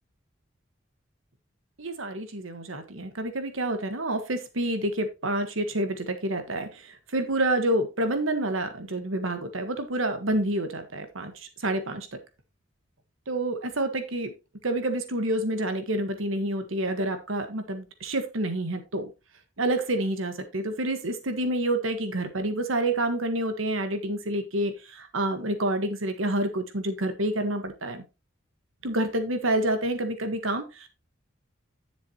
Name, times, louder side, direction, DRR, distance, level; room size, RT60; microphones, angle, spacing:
voice 1, 1.8-12.1 13.3-14.3 14.6-19.1 19.6-28.0 28.8-30.9, right 1 dB, 90° right, 8 dB, 1.5 m, -28 dB
11.0 x 7.0 x 3.0 m, 0.27 s
head